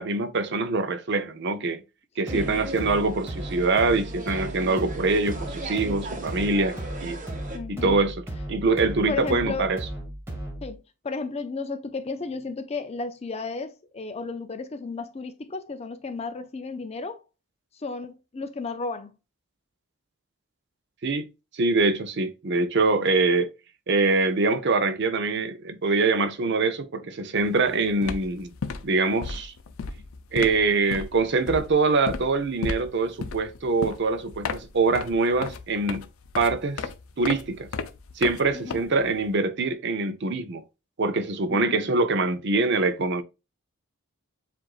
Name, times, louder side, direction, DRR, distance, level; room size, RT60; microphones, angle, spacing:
voice 1, 0.0-1.8 2.2-7.2 7.7-8.2 8.5-9.8 21.0-21.3 21.5-23.5 23.9-28.5 28.8-29.5 30.3-36.1 36.4-36.8 37.2-37.7 38.2-40.6 41.0-43.2, right 3 dB, 55° right, 0.6 m, -24 dB
voice 2, 2.3-2.7 7.5-8.0 9.1-9.7 10.6-17.2 17.7-19.1 38.5-38.9 41.5-41.8, left 4 dB, 30° left, 0.4 m, -34 dB
sound 1, 2.3-10.8, right 1 dB, 10° right, 1.4 m, -36 dB
sound 2, 2.3-7.6, right 2 dB, 35° right, 0.9 m, -39 dB
sound 3, 27.4-27.6 27.9-39.3, left 5 dB, 75° left, 0.5 m, -35 dB
7.6 x 2.5 x 2.4 m
head